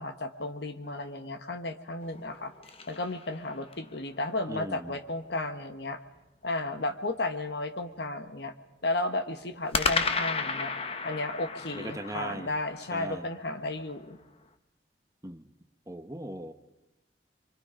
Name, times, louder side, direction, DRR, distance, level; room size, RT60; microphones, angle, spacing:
voice 1, 0.0-2.5 2.9-6.0 6.4-8.5 8.8-10.7 11.0-14.2, left 2 dB, 65° left, 8 dB, 1.5 m, -33 dB
sound 1, 2.0-3.9 9.7-14.0, left 4 dB, 30° left, 1.0 m, -34 dB
voice 2, 4.5-5.0 11.7-12.5 12.9-13.2 15.2-15.4 15.9-16.5, right 1 dB, 20° right, 8 dB, 0.9 m, -38 dB
29.5 x 24.0 x 5.2 m, 0.93 s
head